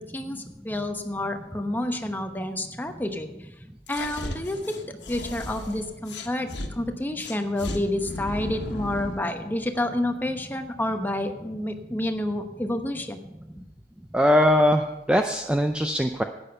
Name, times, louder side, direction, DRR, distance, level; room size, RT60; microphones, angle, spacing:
voice 1, 0.0-3.5 3.9-13.2, left 1 dB, 10° left, 5 dB, 0.9 m, -29 dB
sound 1, 3.9-6.7 7.2-9.3, left 1 dB, 85° left, 1.5 m, -35 dB
voice 2, 14.1-16.2, equal, 5° right, 5 dB, 0.4 m, -21 dB
12.0 x 8.8 x 5.6 m, 0.96 s
head